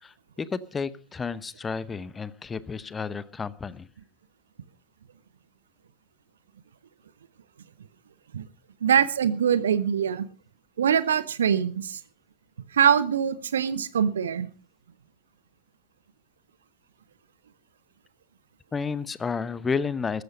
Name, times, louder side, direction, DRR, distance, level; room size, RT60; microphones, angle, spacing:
voice 1, 0.0-3.9 18.7-20.2, left 5 dB, 15° left, 0.9 m, -31 dB
voice 2, 8.8-10.3 10.8-12.0 12.7-14.5, right 8 dB, 65° right, 1.0 m, -23 dB
14.5 x 13.0 x 5.2 m
figure-of-eight pair, 90°, 0 cm